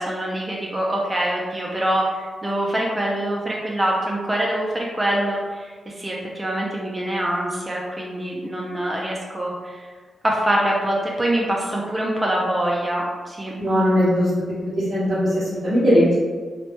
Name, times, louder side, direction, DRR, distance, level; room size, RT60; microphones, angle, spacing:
voice 1, 0.0-9.9 10.2-13.5, right 1 dB, 10° right, -3 dB, 0.3 m, -24 dB
voice 2, 13.6-14.3 14.9-16.1, equal, 30° right, -12 dB, 0.8 m, -19 dB
3.1 x 2.1 x 2.8 m, 1.5 s
wide cardioid pair, 145°, 0 cm